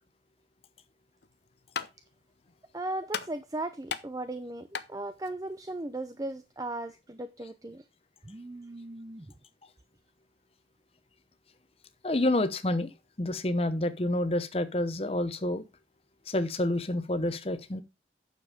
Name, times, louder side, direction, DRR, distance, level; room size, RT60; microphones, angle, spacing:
sound 1, 1.2-6.5, left 6 dB, 70° left, 0.8 m, -41 dB
voice 1, 2.7-7.8 8.2-9.3, right 2 dB, 20° right, 0.5 m, -37 dB
voice 2, 12.0-12.9 13.2-15.6 16.3-17.8, left 1 dB, 35° left, 0.9 m, -28 dB
9.0 x 7.0 x 4.9 m
head